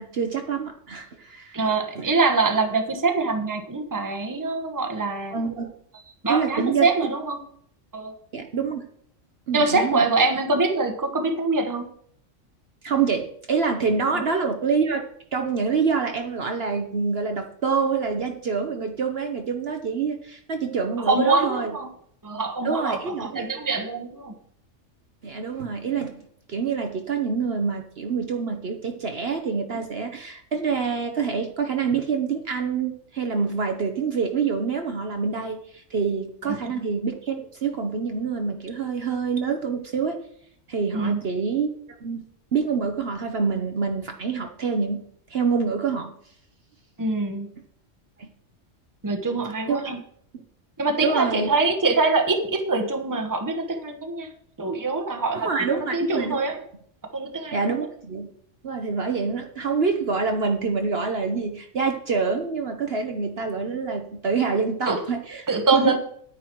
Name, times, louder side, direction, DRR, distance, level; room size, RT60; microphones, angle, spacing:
voice 1, 0.0-1.6 2.0-2.1 5.3-5.7 6.3-6.9 8.3-8.8 9.5-10.0 12.8-15.0 15.3-21.7 22.6-23.5 25.2-40.2 40.7-41.7 42.0-42.2 42.5-45.0 45.3-46.1 48.2-48.3 49.7-49.9 51.0-51.5 55.3-56.4 57.5-58.3 58.6-65.5 65.7-65.9, right 5 dB, 55° right, 4 dB, 1.1 m, -26 dB
voice 2, 1.5-5.3 6.2-7.4 7.9-8.1 9.5-11.9 14.1-14.2 21.0-21.9 22.2-24.3 36.4-36.7 40.9-41.2 47.0-47.5 49.0-50.0 50.8-54.3 54.6-56.6 57.1-57.8 64.9-65.0 65.5-66.0, right 3 dB, 15° right, 6 dB, 1.1 m, -24 dB
9.4 x 9.2 x 4.5 m, 0.66 s
omnidirectional pair, 1.3 m